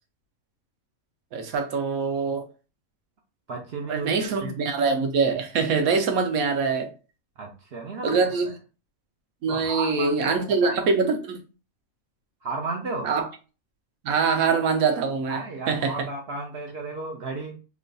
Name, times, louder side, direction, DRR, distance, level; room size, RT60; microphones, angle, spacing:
voice 1, 1.3-2.5 3.9-6.9 8.0-8.5 9.4-11.4 13.0-13.3 14.0-15.4 15.7-15.9, right 5 dB, 85° right, 1.2 m, -24 dB
voice 2, 3.5-4.5 7.4-8.3 9.5-10.8 12.4-13.1 15.3-17.5, right 3 dB, 60° right, 0.7 m, -34 dB
3.1 x 2.2 x 3.8 m
omnidirectional pair, 1.4 m